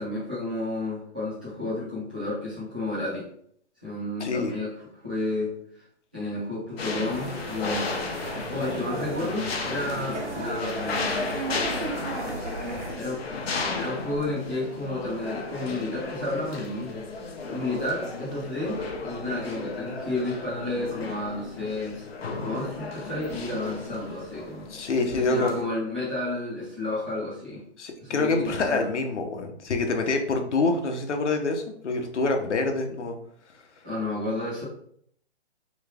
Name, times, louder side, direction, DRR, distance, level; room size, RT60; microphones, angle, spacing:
voice 1, 0.0-3.2 3.8-5.5 6.1-7.9 8.5-11.4 13.0-13.2 13.8-17.1 17.5-22.0 22.3-24.7 25.2-27.6 28.0-28.9 32.9-33.0 33.8-34.6, left 2 dB, 10° right, -11 dB, 0.5 m, -31 dB
voice 2, 4.2-4.5 24.7-25.5 27.8-33.1, left 3 dB, 85° left, 4 dB, 0.9 m, -26 dB
sound 1, 6.8-25.6, left 3 dB, 60° left, 0.7 m, -34 dB
sound 2, 7.1-12.9, right 3 dB, 90° right, 1.2 m, -35 dB
3.4 x 3.1 x 3.4 m, 0.66 s
hypercardioid pair, 175°, 34 cm